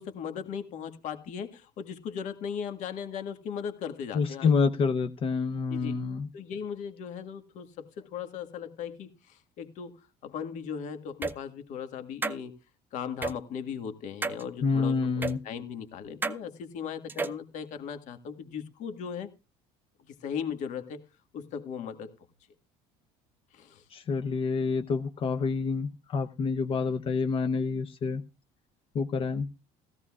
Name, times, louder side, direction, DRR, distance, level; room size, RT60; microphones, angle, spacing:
voice 1, 0.0-4.5 5.7-6.0 6.3-12.5 12.9-19.3 20.2-21.0 21.3-22.1 23.5-23.8, left 7 dB, 60° left, 7 dB, 1.8 m, -38 dB
voice 2, 4.1-6.3 14.6-15.4 23.9-28.2 28.9-29.5, left 5 dB, 40° left, 7 dB, 0.8 m, -28 dB
sound 1, 11.2-11.3 12.2-12.4 13.2-13.3 14.2-14.4 15.2-15.3 16.2-16.4 17.1-17.4, right 3 dB, 15° right, 0.7 m, -31 dB
16.5 x 15.0 x 2.4 m, 0.29 s
cardioid pair, 125°, 14 cm